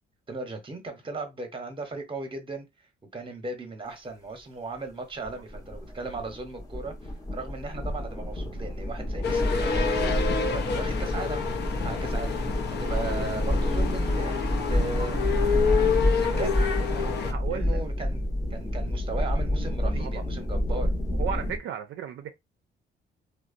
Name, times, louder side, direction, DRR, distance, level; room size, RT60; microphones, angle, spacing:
voice 1, 0.3-2.7 3.1-11.4 11.8-12.3 12.7-15.2 16.2-20.9, right 3 dB, 25° right, 0.8 m, -37 dB
sound 1, 5.2-21.6, left 1 dB, 15° left, 0.7 m, -28 dB
sound 2, 9.2-17.3, left 6 dB, 60° left, 0.5 m, -28 dB
voice 2, 16.1-16.5 17.3-17.8 20.0-20.2 20.7-20.8 21.1-22.3, right 8 dB, 75° right, 0.4 m, -36 dB
2.7 x 2.1 x 2.5 m
cardioid pair, 90°, 20 cm